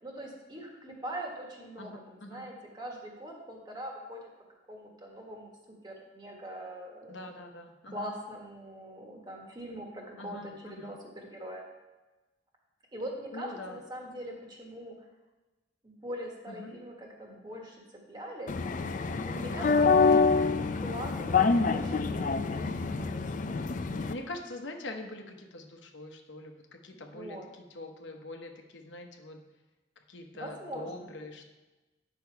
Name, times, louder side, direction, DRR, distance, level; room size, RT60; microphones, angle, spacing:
voice 1, 0.0-4.2 4.7-5.5 5.8-7.2 7.9-11.6 12.9-14.9 15.8-18.5 19.2-23.6 27.1-27.5 30.3-31.1, equal, 25° right, 0 dB, 1.5 m, -42 dB
voice 2, 1.8-2.5 7.1-8.1 10.2-10.9 13.3-13.8 16.5-16.8 19.6-20.3 24.1-29.4 30.1-31.5, left 2 dB, 80° left, 4 dB, 1.0 m, -44 dB
sound 1, 18.5-24.1, left 4 dB, 45° left, 0.4 m, -26 dB
8.8 x 6.0 x 4.6 m, 1.1 s
head